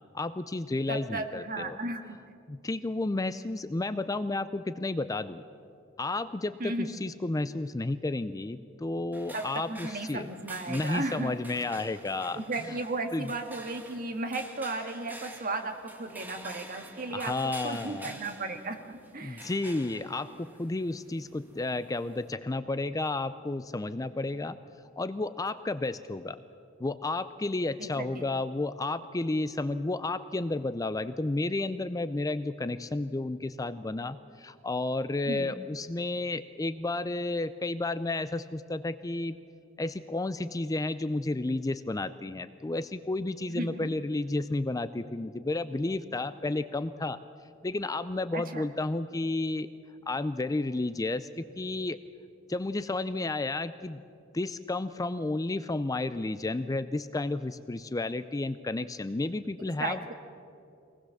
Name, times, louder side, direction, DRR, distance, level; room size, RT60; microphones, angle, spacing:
voice 1, 0.1-1.8 2.5-5.4 6.0-10.3 10.7-12.7 13.1-13.3 17.1-18.1 19.2-24.6 25.0-26.4 26.8-39.4 39.8-47.2 47.6-49.7 50.1-52.0 52.5-54.0 54.3-60.0, left 2 dB, 15° left, 13 dB, 0.4 m, -32 dB
voice 2, 0.9-2.2 6.6-7.0 9.3-11.4 12.3-17.3 17.6-19.5 27.8-28.3 35.2-35.5 43.5-43.8 48.3-48.6 59.7-60.1, right 2 dB, 45° right, 5 dB, 1.8 m, -35 dB
sound 1, 9.1-22.3, right 1 dB, 10° right, 2.0 m, -48 dB
24.0 x 19.0 x 7.2 m, 2.4 s
head